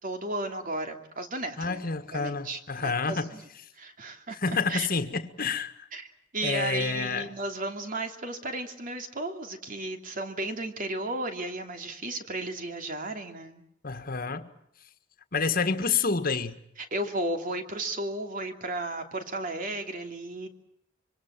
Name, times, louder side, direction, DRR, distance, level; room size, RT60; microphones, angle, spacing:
voice 1, 0.0-1.8 2.1-3.4 3.8-4.9 5.9-6.1 6.3-13.6 16.8-20.5, right 2 dB, 45° right, 2.9 m, -34 dB
voice 2, 1.6-3.3 4.4-5.9 6.4-7.3 13.8-14.5 15.3-16.6, left 4 dB, 45° left, 1.8 m, -29 dB
26.0 x 24.0 x 7.6 m
head